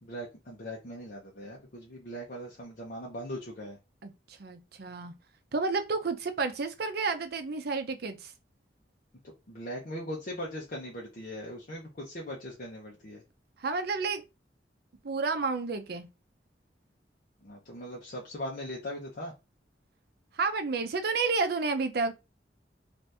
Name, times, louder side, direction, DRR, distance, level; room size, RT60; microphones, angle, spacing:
voice 1, 0.0-3.8 9.5-13.2 17.4-19.3, equal, 50° left, 0.8 m, -40 dB
voice 2, 4.0-5.1 5.5-8.3 13.6-14.2 15.0-16.1 20.3-22.1, right 4 dB, 60° right, 0.6 m, -31 dB
2.8 x 2.6 x 3.4 m
head